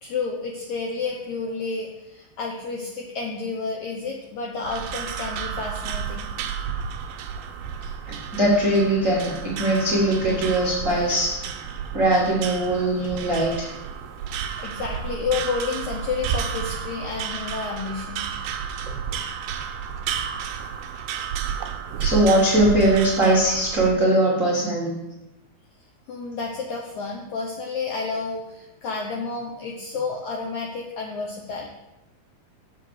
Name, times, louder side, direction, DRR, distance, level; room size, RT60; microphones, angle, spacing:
voice 1, 0.0-6.3 7.1-7.2 14.6-18.2 26.1-31.7, left 4 dB, 80° left, -1 dB, 1.7 m, -30 dB
sound 1, 4.6-23.9, right 7 dB, 80° right, 2.3 m, -31 dB
voice 2, 8.1-11.3 11.9-13.7 22.0-24.9, right 1 dB, 65° right, -6 dB, 0.7 m, -20 dB
7.7 x 5.8 x 6.3 m, 0.94 s
omnidirectional pair, 4.4 m